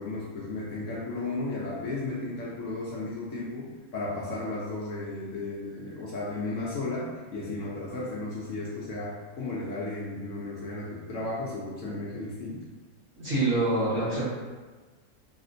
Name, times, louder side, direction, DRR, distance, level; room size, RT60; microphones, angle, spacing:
voice 1, 0.0-12.7, left 2 dB, 65° left, -5 dB, 0.8 m, -34 dB
voice 2, 13.2-14.2, right 2 dB, 55° right, -10 dB, 1.5 m, -25 dB
3.5 x 2.4 x 2.5 m, 1.3 s
omnidirectional pair, 1.6 m